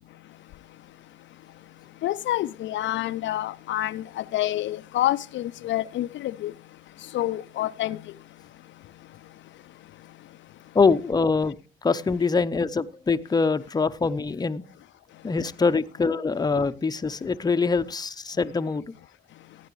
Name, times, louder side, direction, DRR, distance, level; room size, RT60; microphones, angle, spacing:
voice 1, 2.0-4.0 4.3-6.5 7.1-8.0, left 14 dB, 70° left, 0.4 m, -27 dB
voice 2, 10.7-11.6 11.8-14.6 15.2-18.9, left 4 dB, 20° left, 0.6 m, -24 dB
16.0 x 9.2 x 3.0 m
cardioid pair, 90°, 20 cm